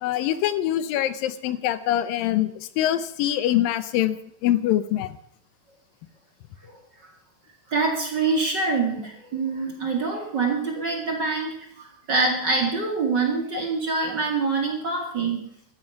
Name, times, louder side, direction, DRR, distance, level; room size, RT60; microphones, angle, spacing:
voice 1, 0.0-2.5 2.8-4.2 4.4-5.1, left 12 dB, 80° left, 14 dB, 2.4 m, -24 dB
voice 2, 7.7-15.5, right 4 dB, 35° right, 2 dB, 2.2 m, -25 dB
15.0 x 13.0 x 5.8 m, 0.66 s
omnidirectional pair, 4.2 m